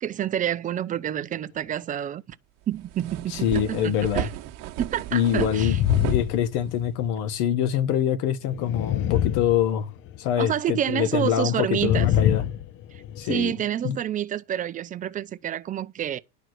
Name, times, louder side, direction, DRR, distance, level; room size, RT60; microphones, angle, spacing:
voice 1, 0.0-2.4 2.7-4.3 4.8-5.8 10.4-12.1 12.9-16.2, right 10 dB, 25° right, 0.5 m, -28 dB
sound 1, 2.3-2.4 2.7-6.9, right 14 dB, 50° right, 1.3 m, -34 dB
voice 2, 3.3-4.3 5.1-9.9 10.2-12.4 13.2-13.5 13.8-14.0, left 10 dB, 60° left, 1.2 m, -25 dB
sound 2, 5.5-7.1 8.5-10.2 11.7-13.3, left 11 dB, 35° left, 0.4 m, -25 dB
11.0 x 4.6 x 6.4 m
supercardioid pair, 130°, 34 cm